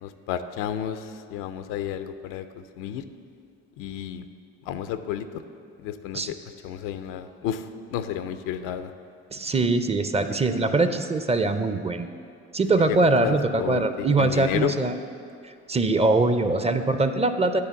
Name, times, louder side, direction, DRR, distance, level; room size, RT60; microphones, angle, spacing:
voice 1, 0.0-3.0 3.8-4.2 4.7-5.3 5.8-6.4 6.6-8.9 12.9-14.8, left 10 dB, 85° left, 10 dB, 0.5 m, -31 dB
voice 2, 9.3-12.1 12.5-15.0 15.4-17.6, right 3 dB, 20° right, 9 dB, 0.5 m, -23 dB
9.7 x 3.5 x 7.0 m, 2.4 s
supercardioid pair, 70°, 31 cm